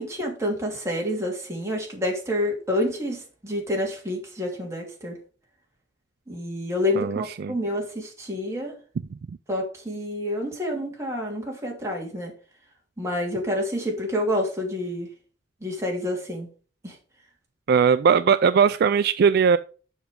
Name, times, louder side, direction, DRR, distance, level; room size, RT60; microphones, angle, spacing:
voice 1, 0.0-5.2 6.3-8.7 9.5-12.3 13.0-15.1 15.6-16.5 16.8-16.9, left 1 dB, 15° right, -1 dB, 2.8 m, -28 dB
voice 2, 7.0-7.5 17.7-19.6, right 6 dB, 60° right, 13 dB, 0.3 m, -19 dB
7.2 x 5.9 x 5.1 m, 0.38 s
head